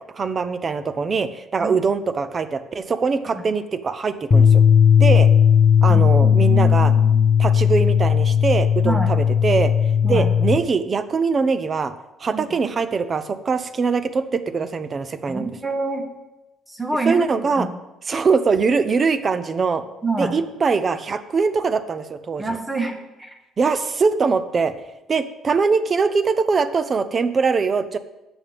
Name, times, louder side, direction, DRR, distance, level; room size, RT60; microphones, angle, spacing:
voice 1, 0.1-4.6 5.0-5.3 5.8-6.9 7.4-9.7 10.0-11.9 12.2-15.5 17.1-17.7 18.1-19.8 20.2-22.4 23.6-24.7 25.1-28.0, right 5 dB, 30° right, 11 dB, 0.8 m, -22 dB
sound 1, 4.3-10.6, left 8 dB, 35° left, 0.9 m, -16 dB
voice 2, 5.9-7.2 8.8-9.1 10.0-10.3 12.3-12.5 15.3-16.1 16.7-17.7 20.0-20.3 22.4-23.3, right 3 dB, 10° right, 4 dB, 1.6 m, -27 dB
14.0 x 9.1 x 3.6 m, 0.98 s
cardioid pair, 130°, 0 cm